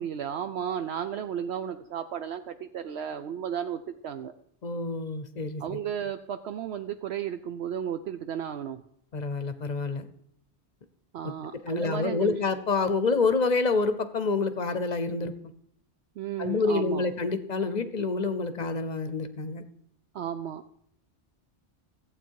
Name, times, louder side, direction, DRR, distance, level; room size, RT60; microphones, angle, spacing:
voice 1, 0.0-4.3 5.6-8.8 11.1-12.4 16.2-17.1 20.1-20.7, right 9 dB, 70° right, 9 dB, 0.8 m, -34 dB
voice 2, 4.6-5.6 9.1-10.1 11.6-15.3 16.4-19.6, left 4 dB, 45° left, 12 dB, 0.8 m, -27 dB
14.5 x 8.3 x 4.6 m, 0.71 s
omnidirectional pair, 1.2 m